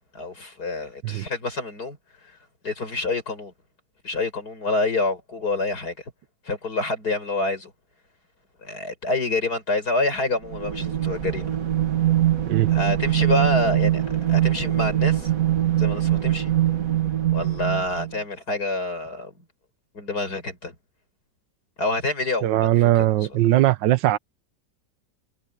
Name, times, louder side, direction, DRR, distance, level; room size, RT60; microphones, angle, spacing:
voice 1, 0.1-2.0 2.6-3.5 4.0-6.0 6.4-7.7 8.6-11.5 12.7-14.0 14.3-15.3 15.8-16.5 17.3-19.3 19.9-20.7 21.8-23.4, left 2 dB, 60° left, 6.7 m, -27 dB
sound 1, 10.5-18.1, right 12 dB, 50° right, 2.0 m, -22 dB
voice 2, 22.4-24.2, right 14 dB, 90° right, 1.4 m, -20 dB
omnidirectional pair, 1.9 m